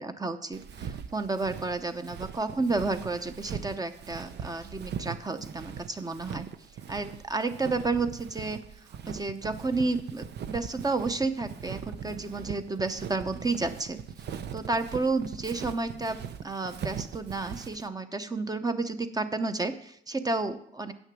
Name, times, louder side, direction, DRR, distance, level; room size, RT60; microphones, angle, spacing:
voice 1, 0.0-6.5 6.9-8.6 9.1-14.0 14.5-20.9, right 3 dB, 20° right, 9 dB, 0.8 m, -31 dB
Walk footsteps, 0.5-17.9, right 8 dB, 60° right, 0.6 m, -41 dB
8.5 x 6.4 x 6.1 m, 0.67 s
cardioid pair, 90°, 20 cm